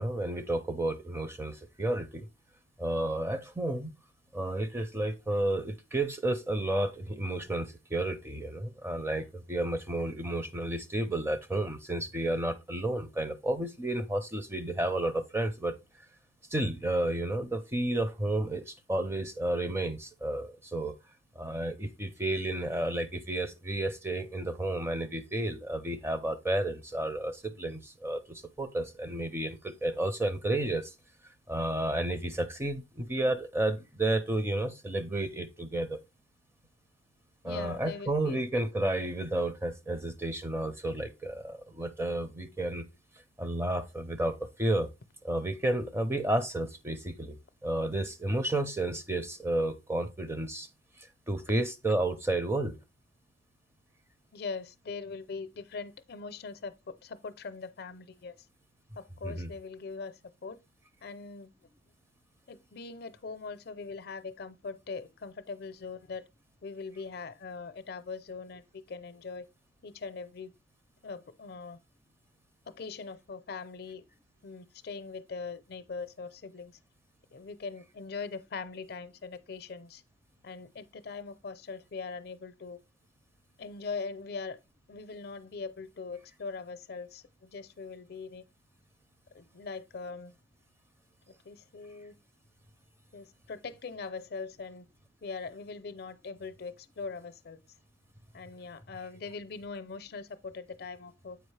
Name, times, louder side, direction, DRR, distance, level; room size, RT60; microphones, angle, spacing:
voice 1, 0.0-2.3 2.8-3.9 4.3-15.7 16.5-20.9 21.4-30.9 31.5-36.0 37.4-42.8 43.4-44.9 45.2-50.7 51.3-52.8 59.2-59.5, right 1 dB, 15° right, 0.5 m, -31 dB
voice 2, 37.4-38.4 54.3-58.3 59.0-60.6 61.0-61.5 62.5-66.2 66.6-69.5 69.8-70.5 71.0-71.8 72.7-74.0 74.4-76.8 77.3-80.0 80.4-82.8 83.6-84.6 84.9-88.4 89.3-90.3 91.3-92.1 93.1-94.9 95.2-97.6 98.3-101.4, left 4 dB, 55° left, 0.5 m, -41 dB
7.9 x 4.9 x 3.2 m
head